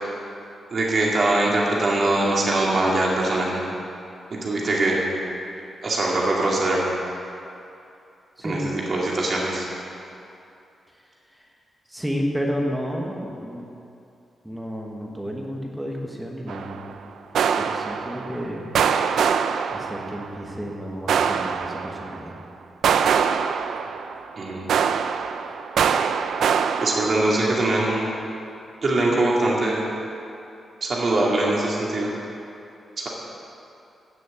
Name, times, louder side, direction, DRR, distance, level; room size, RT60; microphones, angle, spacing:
voice 1, 0.7-3.6 4.3-5.0 5.8-6.8 8.4-9.6 24.4-24.7 26.8-28.1 28.8-29.8 30.8-32.1 33.0-33.1, right 2 dB, 40° right, -4 dB, 2.5 m, -22 dB
voice 2, 8.4-8.7 11.9-13.6 14.4-16.8 17.6-18.7 19.7-22.4, equal, 5° right, -1 dB, 1.4 m, -31 dB
sound 1, 16.5-16.9 17.3-18.4 18.7-20.3 21.1-22.2 22.8-24.3 24.7-27.6, right 7 dB, 80° right, 0.5 m, -24 dB
16.0 x 6.5 x 8.0 m, 2.7 s
wide cardioid pair, 180°, 0 cm